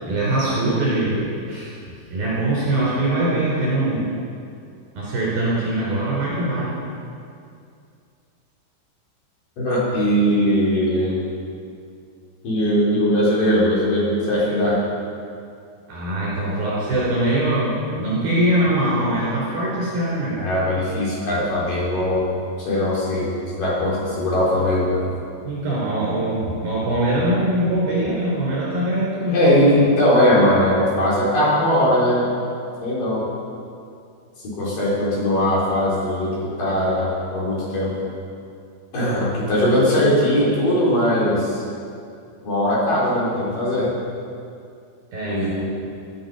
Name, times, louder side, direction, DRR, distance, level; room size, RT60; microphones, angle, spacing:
voice 1, 0.0-1.7 2.1-4.1 5.0-6.8 15.9-20.3 25.4-29.9 45.1-45.6, right 1 dB, 50° right, -7 dB, 5.5 m, -22 dB
voice 2, 9.6-11.2 12.4-14.8 20.4-22.3 22.6-25.0 29.3-32.3 32.8-33.3 34.4-38.0 38.9-41.6 42.4-43.9 45.2-45.7, left 1 dB, 45° left, -7 dB, 5.3 m, -20 dB
23.0 x 11.5 x 5.5 m, 2.4 s
omnidirectional pair, 5.9 m